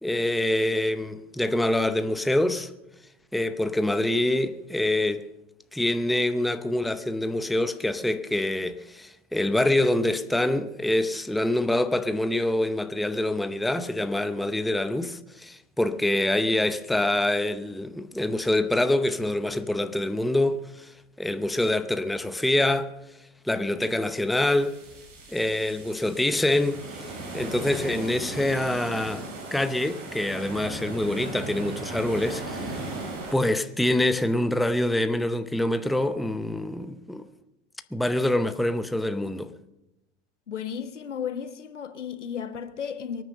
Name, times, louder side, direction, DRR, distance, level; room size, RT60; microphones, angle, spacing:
voice 1, 0.0-2.7 3.3-5.2 5.7-20.9 21.2-22.9 23.4-24.8 25.3-26.8 27.3-29.3 29.5-32.8 33.3-37.3 37.9-39.5, left 1 dB, ahead, 0.7 m, -25 dB
sound 1, 24.3-33.3, right 2 dB, 40° right, 7.6 m, -37 dB
voice 2, 40.5-43.2, left 7 dB, 85° left, 1.4 m, -34 dB
23.0 x 9.5 x 6.6 m
hypercardioid pair, 95°, 35 cm